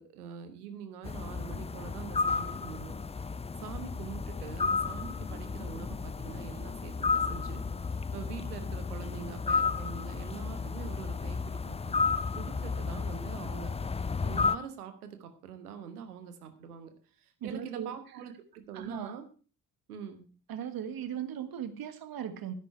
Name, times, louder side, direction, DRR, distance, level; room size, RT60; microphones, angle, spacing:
voice 1, 0.0-2.9 3.6-7.6 7.9-12.0 12.4-19.2 19.9-20.3, right 7 dB, 80° right, 9 dB, 1.4 m, -44 dB
sound 1, 1.0-14.6, left 4 dB, 15° left, 0.6 m, -33 dB
voice 2, 17.4-18.0 18.7-19.2 20.5-22.5, right 9 dB, 50° right, 10 dB, 1.6 m, -38 dB
12.5 x 10.0 x 4.7 m, 0.38 s
figure-of-eight pair, 40°, 45 cm